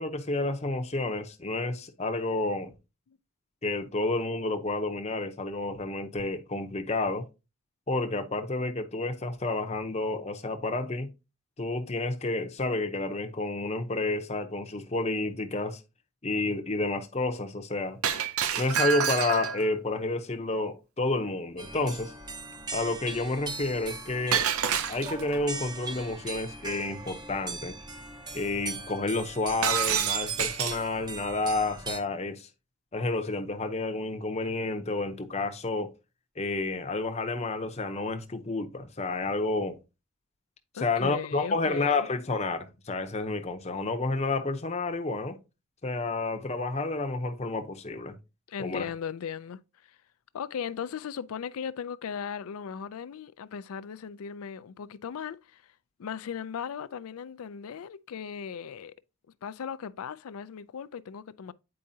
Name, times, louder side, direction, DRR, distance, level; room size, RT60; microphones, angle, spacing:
voice 1, 0.0-2.7 3.6-7.2 7.9-11.1 11.6-15.8 16.2-18.0 18.6-22.1 22.7-24.5 24.9-27.8 28.3-32.5 32.9-35.9 36.4-39.8 40.7-45.4 45.8-48.2 48.6-48.9, left 2 dB, 30° left, 0.7 m, -30 dB
Shatter, 18.0-19.7 24.3-25.4 29.6-30.9, right 8 dB, 85° right, 0.6 m, -28 dB
sound 1, 21.6-32.0, right 3 dB, 20° right, 0.7 m, -40 dB
voice 2, 40.7-42.1 48.5-50.0 50.3-55.7 56.0-58.9 59.4-61.5, left 7 dB, 85° left, 0.4 m, -37 dB
8.7 x 4.7 x 2.7 m
head